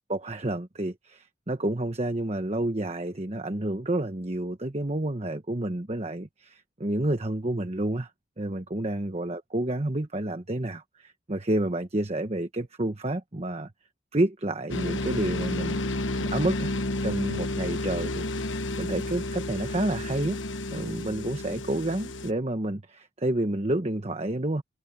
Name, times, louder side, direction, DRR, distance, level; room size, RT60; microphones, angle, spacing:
voice 1, 0.1-8.1 8.4-13.7 14.1-15.8 16.2-16.7 17.0-20.4 20.7-24.6, right 1 dB, 35° right, 1.2 m, -29 dB
sound 1, 14.7-22.3, left 2 dB, 80° left, 1.2 m, -31 dB
head